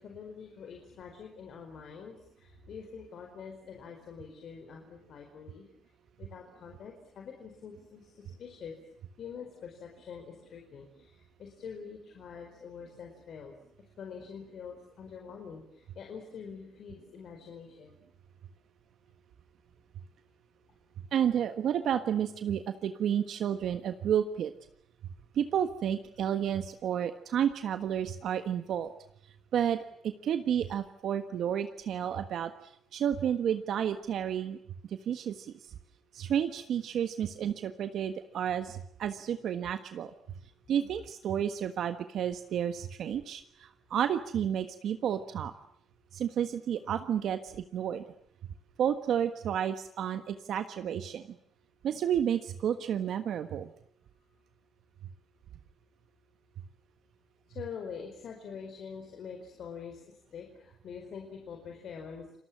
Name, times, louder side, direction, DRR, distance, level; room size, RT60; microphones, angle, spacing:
voice 1, 0.0-5.7 6.2-8.7 9.2-13.5 14.0-18.0 30.9-31.0 57.5-62.4, left 6 dB, 65° left, 3 dB, 4.8 m, -45 dB
voice 2, 21.1-24.5 25.3-28.9 29.5-29.8 30.0-32.5 32.9-34.6 34.9-35.5 36.1-40.1 40.7-45.5 46.1-48.0 48.8-51.2 51.8-53.7, right 9 dB, 70° right, 9 dB, 1.4 m, -31 dB
30.0 x 21.0 x 7.5 m, 0.67 s
cardioid pair, 90°, 0 cm